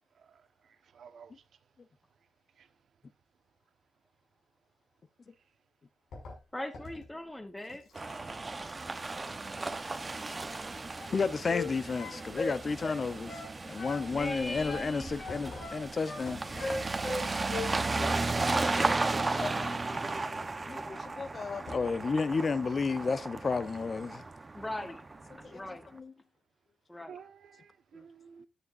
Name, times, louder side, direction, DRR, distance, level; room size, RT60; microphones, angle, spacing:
voice 1, 0.9-1.3 27.1-28.5, right 7 dB, 70° right, 1.2 m, -51 dB
sound 1, 6.1-10.6 10.8-11.7 15.3-21.0 21.4-21.5 21.7-22.2, left 2 dB, 85° left, 6.2 m, -51 dB
voice 2, 6.5-7.8 14.1-15.5 18.5-20.2 24.5-25.0 25.5-25.9 26.9-27.2, left 1 dB, 10° left, 1.0 m, -41 dB
sound 2, 7.9-25.6, right 3 dB, 20° right, 1.0 m, -35 dB
sound 3, 11.0-11.7 11.9-13.5 13.8-14.9 15.2-16.2 16.6-17.7 18.0-18.2, left 3 dB, 60° left, 6.0 m, -38 dB
voice 3, 11.1-16.4 18.0-18.5 19.3-20.2 20.7-24.2 25.3-26.1, left 4 dB, 40° left, 0.7 m, -33 dB
13.5 x 9.7 x 2.6 m
wide cardioid pair, 160°, 0 cm